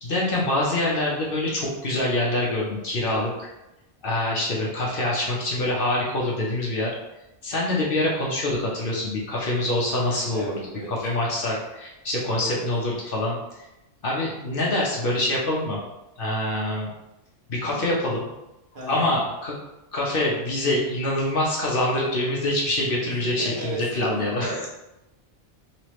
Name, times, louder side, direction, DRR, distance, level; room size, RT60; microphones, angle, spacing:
voice 1, 0.0-3.5 4.0-7.0 7.4-10.5 10.9-13.4 14.0-15.8 16.2-16.9 17.5-18.3 18.9-19.5 19.9-24.5, left 1 dB, 55° left, -4 dB, 0.8 m, -25 dB
voice 2, 10.3-10.9 12.4-12.7 17.7-17.9 18.7-19.1 23.1-23.8 24.1-24.7, right 1 dB, 50° right, -6 dB, 1.3 m, -34 dB
3.1 x 3.1 x 3.0 m, 0.94 s
omnidirectional pair, 1.2 m